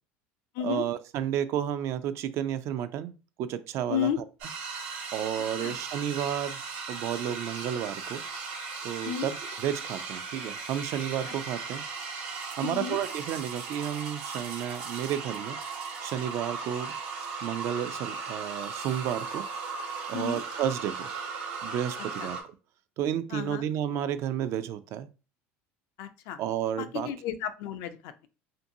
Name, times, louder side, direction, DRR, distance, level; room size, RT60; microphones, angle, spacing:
voice 1, 0.6-4.2 5.1-6.6 6.9-8.2 8.8-11.8 12.6-15.6 16.0-16.9 17.4-19.5 20.1-21.1 21.6-22.4 23.0-25.1 26.4-27.1, right 10 dB, 50° right, 12 dB, 0.3 m, -32 dB
sound 1, 4.4-22.4, right 5 dB, 85° right, 0.8 m, -37 dB
voice 2, 12.6-13.0 20.1-20.4 22.2-22.3 23.3-23.7 26.0-26.4 26.8-28.3, left 10 dB, 65° left, 10 dB, 0.4 m, -33 dB
2.6 x 2.6 x 2.7 m, 0.34 s
supercardioid pair, 120°, 6 cm